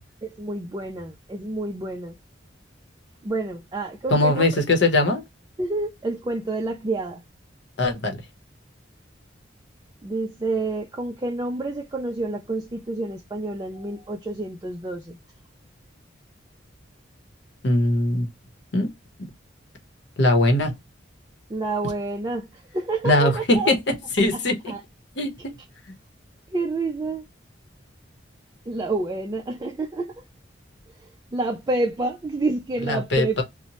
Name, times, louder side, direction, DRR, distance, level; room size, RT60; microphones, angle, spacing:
voice 1, 0.2-2.1 3.2-4.5 5.6-7.2 10.0-15.2 21.5-23.7 24.3-24.8 26.5-27.3 28.7-30.2 31.0-33.4, right 2 dB, 20° right, 0.3 m, -28 dB
voice 2, 4.1-5.2 7.8-8.2 17.6-18.3 18.7-18.9 20.2-20.7 23.0-23.7 24.2-24.7 25.2-25.5 32.9-33.4, left 2 dB, 65° left, 0.8 m, -20 dB
2.7 x 2.1 x 2.9 m
head